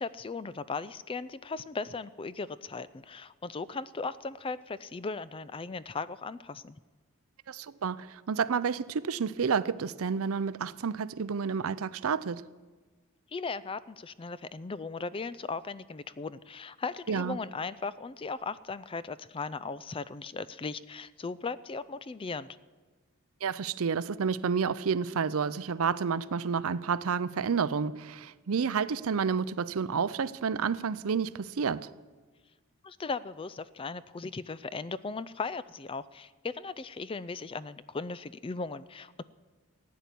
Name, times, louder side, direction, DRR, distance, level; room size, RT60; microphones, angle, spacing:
voice 1, 0.0-6.8 13.3-22.6 32.8-39.2, left 4 dB, 25° left, 0.4 m, -37 dB
voice 2, 7.5-12.4 17.1-17.4 23.4-31.9, right 6 dB, 70° right, 0.5 m, -30 dB
15.5 x 9.4 x 8.3 m
head